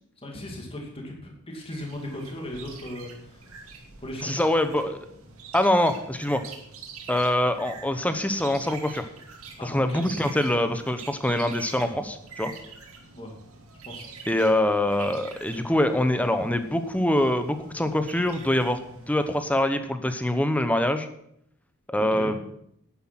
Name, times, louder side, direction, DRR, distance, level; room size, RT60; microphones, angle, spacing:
voice 1, 0.2-3.5 4.0-4.3 9.6-10.0 13.1-13.3 13.9-14.1 21.9-22.3, left 1 dB, 25° left, 0 dB, 2.5 m, -37 dB
sound 1, 1.6-19.6, right 5 dB, 70° right, 2.5 m, -45 dB
voice 2, 4.2-5.0 5.5-6.4 7.1-9.0 9.6-12.5 14.3-18.8 19.1-21.1 21.9-22.4, left 1 dB, 5° left, 9 dB, 0.9 m, -24 dB
10.5 x 10.0 x 5.9 m, 0.71 s
head